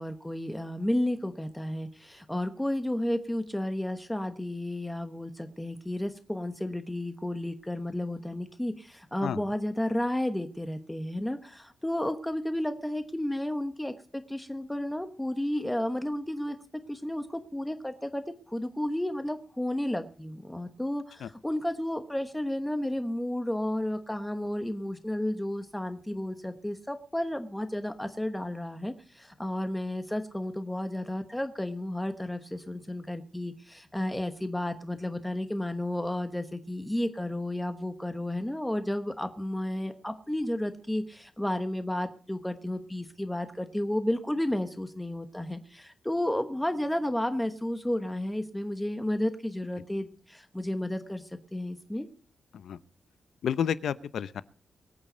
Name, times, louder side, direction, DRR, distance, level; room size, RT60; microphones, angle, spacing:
voice 1, 0.0-16.6 16.9-52.1, left 1 dB, 5° left, 8 dB, 1.1 m, -32 dB
voice 2, 53.4-54.4, left 8 dB, 80° left, 16 dB, 0.8 m, -30 dB
23.0 x 8.8 x 5.1 m, 0.42 s
wide cardioid pair, 180°, 0 cm